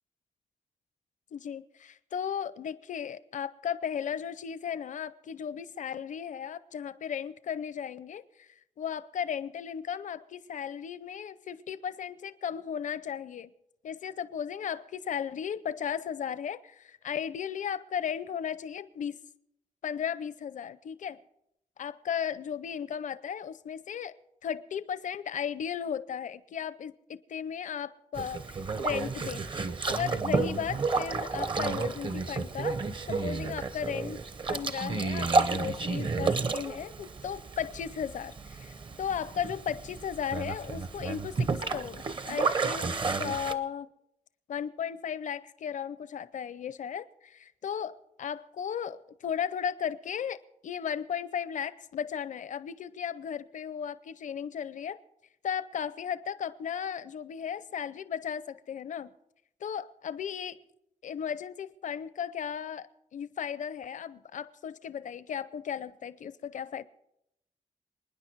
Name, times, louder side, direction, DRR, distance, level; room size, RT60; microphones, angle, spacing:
voice 1, 1.3-8.5 8.8-13.5 13.8-19.2 19.8-21.2 21.8-24.1 24.4-29.4 30.0-32.8 33.1-34.2 34.5-43.9 44.5-47.0 47.6-50.4 50.6-55.0 55.4-59.1 59.6-60.6 61.0-66.8, left 8 dB, 70° left, 0.6 m, -35 dB
Boat Water vehicle, 28.2-43.5, right 4 dB, 40° right, 0.7 m, -31 dB
27.5 x 10.0 x 4.6 m
wide cardioid pair, 170°, 13 cm